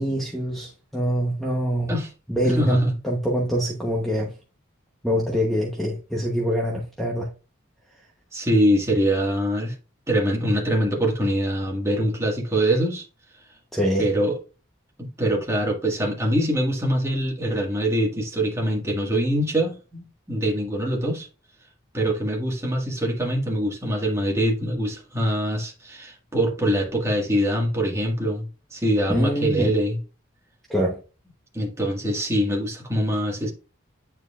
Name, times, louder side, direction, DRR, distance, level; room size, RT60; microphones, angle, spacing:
voice 1, 0.0-1.9 2.3-4.3 5.0-7.3 13.7-14.1 29.1-29.7 30.7-31.0, equal, ahead, 1.0 m, -24 dB
voice 2, 2.4-2.9 8.3-9.7 10.1-13.0 14.0-14.4 15.0-21.3 21.9-30.0 31.5-33.5, equal, 15° right, 1.9 m, -24 dB
9.5 x 4.6 x 2.5 m
head